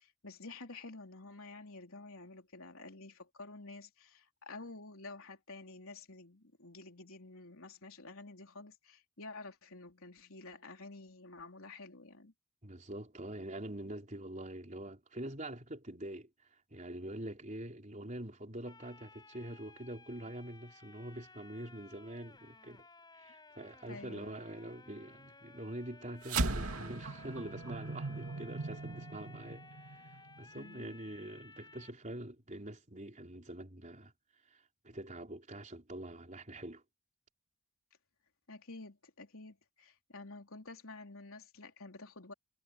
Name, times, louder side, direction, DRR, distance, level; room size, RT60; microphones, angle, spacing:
voice 1, 0.0-12.3 23.9-24.3 30.6-31.0 38.5-42.3, left 3 dB, 65° left, 3.7 m, -50 dB
voice 2, 12.6-22.8 23.1-34.1 34.5-36.8, right 1 dB, 35° right, 4.2 m, -45 dB
sound 1, 18.6-31.9, left 3 dB, 20° left, 7.4 m, -57 dB
sound 2, 26.2-30.9, right 3 dB, 75° right, 2.5 m, -38 dB
head